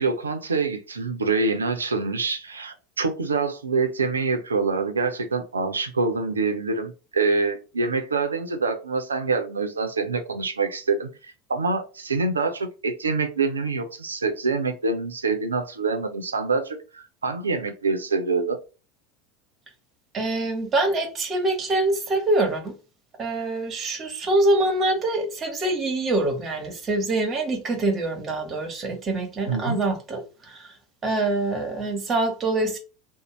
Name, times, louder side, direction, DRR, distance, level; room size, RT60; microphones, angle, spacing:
voice 1, 0.0-18.6 29.5-29.8, right 4 dB, 85° right, 0.5 m, -26 dB
voice 2, 20.1-22.7 23.2-30.8 31.0-32.8, right 2 dB, 30° right, 1.0 m, -25 dB
2.5 x 2.0 x 3.0 m
figure-of-eight pair, 80°, 0 cm